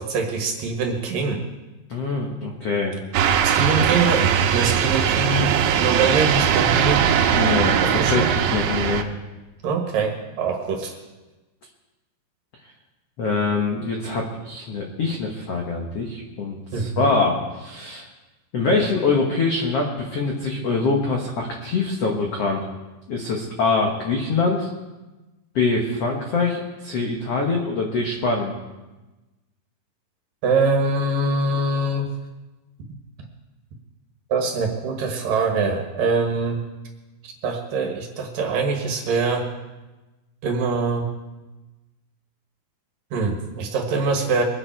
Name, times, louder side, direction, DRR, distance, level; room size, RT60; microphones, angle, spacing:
voice 1, 0.0-1.4 3.4-7.0 7.8-8.3 9.6-11.0 16.7-17.1 30.4-32.1 34.3-36.6 37.2-39.5 40.4-41.1 43.1-44.4, right 4 dB, 60° right, 2 dB, 2.8 m, -23 dB
voice 2, 1.9-3.0 7.3-9.0 13.2-18.1 18.5-22.7 23.1-24.7 25.5-28.5, left 3 dB, 90° left, 0 dB, 1.3 m, -24 dB
sound 1, 3.1-9.0, right 8 dB, 80° right, 3.0 m, -20 dB
24.0 x 9.8 x 4.5 m, 1.1 s
omnidirectional pair, 5.1 m